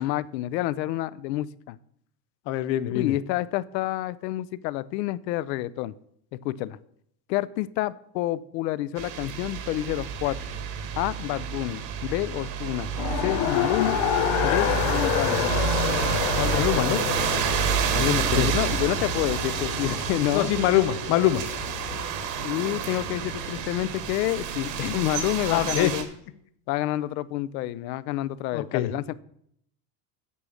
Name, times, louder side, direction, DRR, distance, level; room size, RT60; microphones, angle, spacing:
voice 1, 0.0-1.8 2.9-5.9 6.4-6.8 7.3-10.4 11.0-12.9 13.2-14.0 14.4-15.6 16.4-17.2 18.3-20.5 22.4-26.1 26.7-29.1, left 15 dB, 85° left, 19 dB, 0.7 m, -29 dB
voice 2, 2.5-3.1 16.5-17.0 17.9-18.5 20.3-21.4 25.5-25.9 28.5-28.9, left 13 dB, 35° left, 14 dB, 0.4 m, -24 dB
sound 1, 9.0-26.0, right 6 dB, 85° right, 2.0 m, -29 dB
Race car auto racing, 13.0-22.1, left 10 dB, 55° left, 1.0 m, -29 dB
8.5 x 7.0 x 6.3 m, 0.71 s
supercardioid pair, 160°, 49 cm